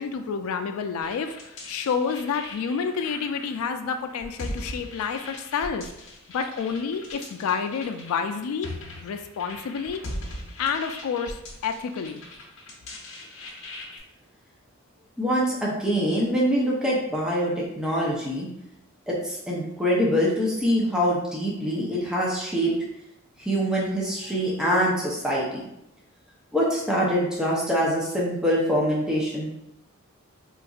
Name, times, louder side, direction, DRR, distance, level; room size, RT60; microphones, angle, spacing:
voice 1, 0.0-5.9 6.3-8.7 9.0-10.0 10.6-12.2, left 6 dB, 85° left, 7 dB, 0.3 m, -29 dB
sound 1, 1.0-14.0, left 1 dB, 65° left, 0.8 m, -40 dB
voice 2, 15.2-18.5 19.1-22.7 23.4-25.7 26.5-29.6, equal, 5° right, -5 dB, 0.6 m, -24 dB
4.0 x 2.5 x 2.4 m, 0.83 s
head